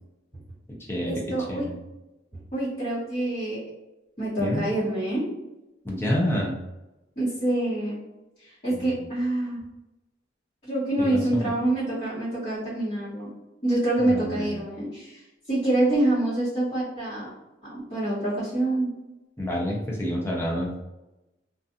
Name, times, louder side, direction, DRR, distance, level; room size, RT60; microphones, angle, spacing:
voice 1, 1.0-1.6 2.5-3.7 4.2-5.2 7.2-8.0 8.4-9.6 10.6-13.3 13.6-17.3 17.6-18.9, right 1 dB, 35° left, -14 dB, 1.3 m, -26 dB
voice 2, 5.8-6.6 8.7-9.0 11.1-11.5 14.0-14.5 19.4-20.8, equal, 15° left, -3 dB, 0.6 m, -28 dB
2.4 x 2.4 x 2.7 m, 0.98 s
head